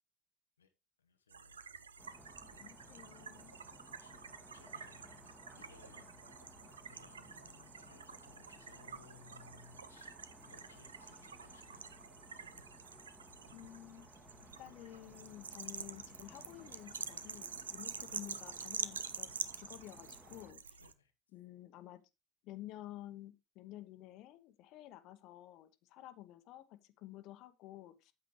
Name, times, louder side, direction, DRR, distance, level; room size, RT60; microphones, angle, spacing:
voice 1, 1.0-1.6 4.0-11.9 20.8-21.1, left 6 dB, 85° left, 0.8 m, -63 dB
sound 1, 1.3-20.9, right 6 dB, 85° right, 0.5 m, -48 dB
sound 2, 2.0-20.5, equal, ahead, 1.7 m, -60 dB
voice 2, 2.6-3.6 13.5-14.1 14.6-19.3 19.5-20.8 21.3-22.0 22.4-28.1, left 14 dB, 60° left, 1.0 m, -52 dB
8.6 x 8.2 x 3.2 m
figure-of-eight pair, 65°, 0 cm